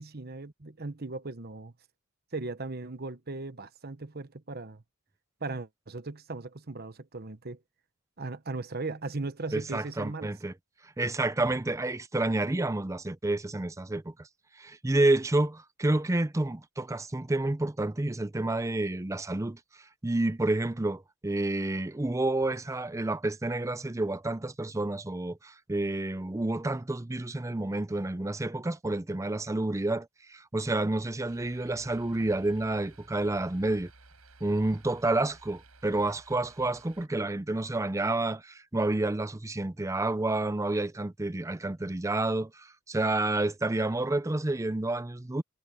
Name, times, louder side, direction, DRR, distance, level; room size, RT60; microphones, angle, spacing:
voice 1, 0.0-1.7 2.3-4.8 5.4-7.6 8.2-10.3, right 3 dB, 45° right, 1.1 m, -38 dB
voice 2, 9.5-10.5 10.8-14.3 14.6-19.6 20.0-33.9 34.4-45.4, right 2 dB, 15° right, 0.5 m, -29 dB
sound 1, 31.3-37.1, right 3 dB, 80° right, 8.0 m, -56 dB
head